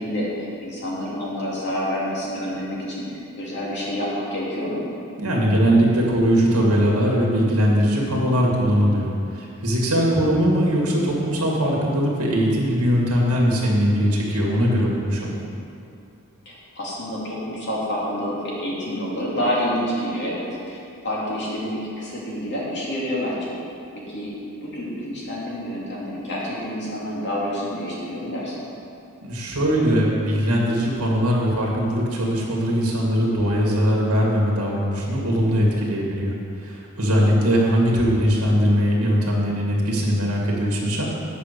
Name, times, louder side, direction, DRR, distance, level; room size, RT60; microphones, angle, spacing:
voice 1, 0.0-4.8 16.5-23.5 23.9-24.3 24.6-28.5, equal, 55° left, -6 dB, 2.3 m, -28 dB
voice 2, 5.2-15.3 29.2-36.3 36.6-41.0, equal, 75° right, -2 dB, 2.0 m, -20 dB
8.3 x 5.4 x 6.7 m, 2.6 s
head